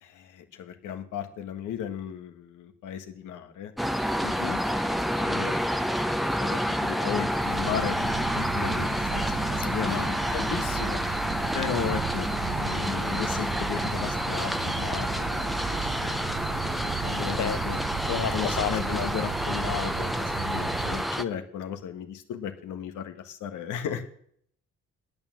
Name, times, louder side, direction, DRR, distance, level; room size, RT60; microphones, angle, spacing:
voice 1, 0.0-5.6 6.1-10.2 11.0-17.8 18.3-24.1, left 9 dB, 85° left, 1.5 m, -36 dB
sound 1, 3.8-21.2, equal, ahead, 0.6 m, -29 dB
voice 2, 4.2-4.7 9.8-11.1 17.4-17.6 18.1-19.1, left 10 dB, 60° left, 0.7 m, -33 dB
sound 2, 7.3-21.0, right 10 dB, 45° right, 0.6 m, -36 dB
9.4 x 8.7 x 7.3 m
cardioid pair, 90°, 30 cm